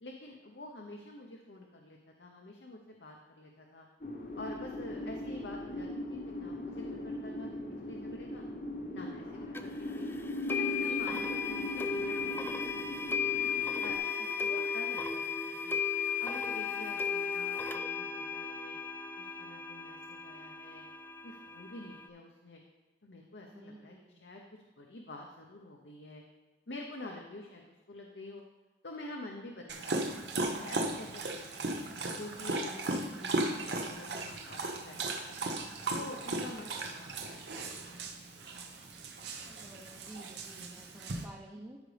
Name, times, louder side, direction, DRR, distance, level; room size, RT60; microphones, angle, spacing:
voice 1, 0.0-3.9 4.4-7.5 7.8-8.4 8.9-10.1 10.5-12.6 12.9-13.3 13.8-15.8 16.2-18.8 19.2-20.8 21.2-22.6 23.0-24.4 24.8-26.2 26.7-28.4 28.8-30.1 30.3-31.7 32.1-35.4 35.9-37.5 37.9-38.1 38.3-38.4 39.0-39.1, left 2 dB, 80° left, 0 dB, 0.8 m, -48 dB
sound 1, 4.0-14.0, left 1 dB, 50° left, 1.0 m, -40 dB
voice 2, 4.8-5.3 10.8-11.3 14.4-14.5 16.7-17.0 23.5-24.2 39.5-41.8, right 1 dB, 15° right, -2 dB, 0.7 m, -52 dB
sound 2, 9.5-9.6 10.5-22.1, left 6 dB, 15° left, 0.3 m, -35 dB
Dog, 29.7-41.2, right 2 dB, 75° right, 0.9 m, -36 dB
13.0 x 5.2 x 3.4 m, 1.2 s
head